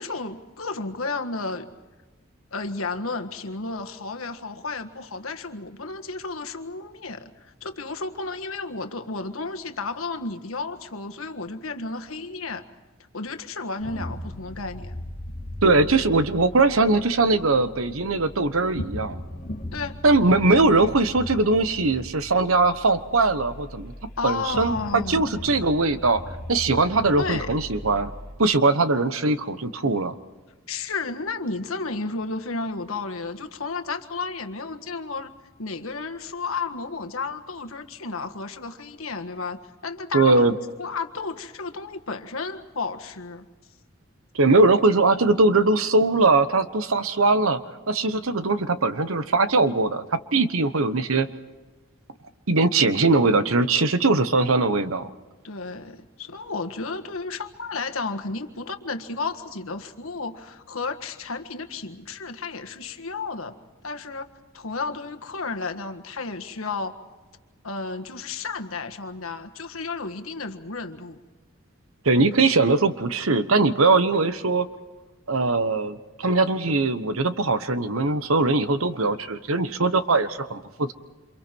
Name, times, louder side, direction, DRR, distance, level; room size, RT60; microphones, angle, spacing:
voice 1, 0.0-1.7 2.5-12.6 13.1-14.9 19.7-20.0 24.2-25.2 27.2-27.5 30.7-35.3 35.6-40.4 40.8-43.4 55.4-63.5 63.8-64.3 64.5-66.9 67.6-71.2, left 3 dB, 90° left, 6 dB, 1.6 m, -32 dB
sound 1, 13.8-28.3, left 1 dB, 40° left, 3.3 m, -38 dB
voice 2, 15.6-19.2 20.0-23.9 24.2-26.2 26.5-28.1 28.4-30.1 40.1-40.5 44.3-47.6 47.9-50.0 50.3-51.3 52.5-55.1 72.0-74.7 75.3-80.9, right 3 dB, 90° right, 12 dB, 1.2 m, -21 dB
28.5 x 27.0 x 4.6 m, 1.2 s
head